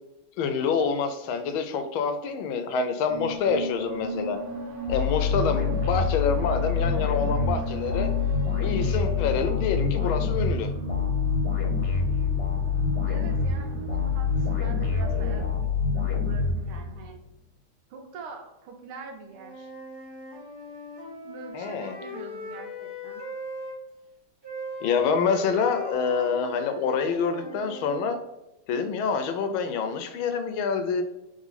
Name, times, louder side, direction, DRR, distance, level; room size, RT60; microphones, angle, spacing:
voice 1, 0.4-4.4 4.9-8.1 8.5-10.7 21.5-22.0 24.8-28.2 28.7-31.0, left 5 dB, 80° left, 8 dB, 1.4 m, -27 dB
sound 1, 3.1-15.5, right 2 dB, 70° right, 1.7 m, -36 dB
sound 2, 4.9-17.1, left 5 dB, 60° left, 1.2 m, -26 dB
voice 2, 13.1-17.2 17.9-19.7 21.2-23.2, right 4 dB, 85° right, 3 dB, 1.7 m, -44 dB
Wind instrument woodwind instrument, 19.3-23.8 24.4-28.1, left 1 dB, 30° right, 1.1 m, -39 dB
3.7 x 3.3 x 4.0 m, 0.92 s
omnidirectional pair, 2.3 m